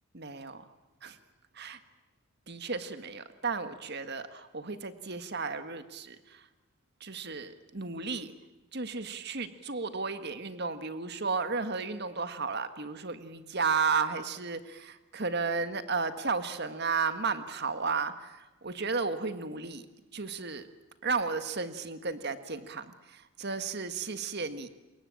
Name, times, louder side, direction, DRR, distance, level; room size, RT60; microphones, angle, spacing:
voice 1, 0.1-0.6 1.0-1.2 1.5-1.8 2.5-6.5 7.0-8.3 8.7-19.9 20.1-20.7 21.0-24.7, right 4 dB, 50° right, 10 dB, 1.6 m, -33 dB
26.0 x 22.0 x 8.9 m, 1.1 s
head